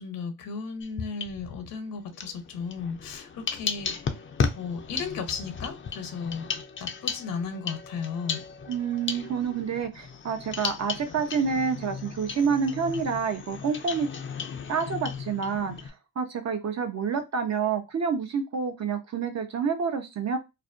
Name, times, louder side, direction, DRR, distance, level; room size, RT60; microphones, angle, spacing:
voice 1, 0.0-4.3 4.6-6.5 6.8-8.4, left 5 dB, 65° left, 0.8 m, -35 dB
sound 1, 0.8-1.7 2.1-15.9, left 6 dB, 35° left, 0.5 m, -35 dB
voice 2, 8.7-14.1 14.7-20.4, right 6 dB, 45° right, 0.8 m, -28 dB
2.5 x 2.1 x 2.5 m
supercardioid pair, 60°, 37 cm